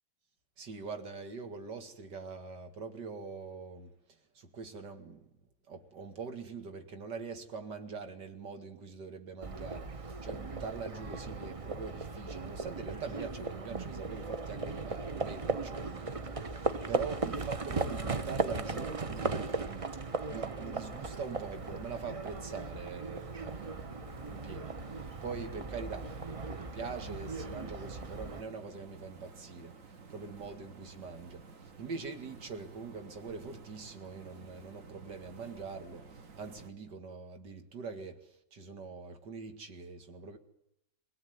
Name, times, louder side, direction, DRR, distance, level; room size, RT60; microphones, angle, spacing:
voice 1, 0.6-3.9 4.3-5.3 5.7-29.8 30.1-40.4, right 4 dB, 80° right, 2.7 m, -44 dB
Livestock farm animals working animals, 9.4-28.4, right 3 dB, 30° right, 0.6 m, -37 dB
sound 1, 20.8-36.7, right 4 dB, 50° right, 1.9 m, -53 dB
22.5 x 17.5 x 9.4 m
omnidirectional pair, 1.8 m